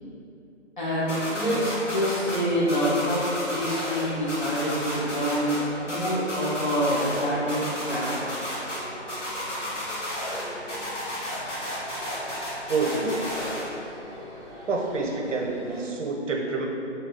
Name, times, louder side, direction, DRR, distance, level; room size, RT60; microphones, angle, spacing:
voice 1, 0.8-5.6 5.8-8.2, equal, 40° left, -8 dB, 0.8 m, -26 dB
sound 1, 1.1-2.4 2.7-4.0 4.3-5.6 5.9-7.2 7.5-8.8 9.1-10.4 10.7-13.6, left 1 dB, 75° left, 1.4 m, -32 dB
sound 2, 1.1-15.9, equal, ahead, 0.4 m, -42 dB
voice 2, 12.7-13.3 14.7-16.7, right 3 dB, 80° right, 0 dB, 0.6 m, -27 dB
2.7 x 2.2 x 3.6 m, 2.7 s
figure-of-eight pair, 165°, 36 cm